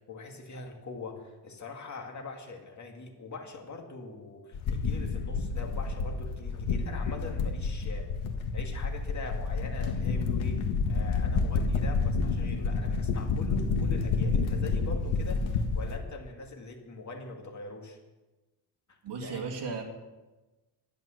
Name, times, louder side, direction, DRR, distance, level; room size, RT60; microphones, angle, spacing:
voice 1, 0.0-8.1 8.5-10.6 10.9-18.0 18.9-19.5, left 3 dB, 35° left, 2 dB, 2.3 m, -43 dB
sound 1, 4.5-16.0, left 4 dB, 70° left, 1.7 m, -29 dB
voice 2, 19.0-19.8, right 5 dB, 55° right, 4 dB, 2.2 m, -35 dB
12.0 x 10.5 x 6.6 m, 1.1 s
cardioid pair, 125°, 49 cm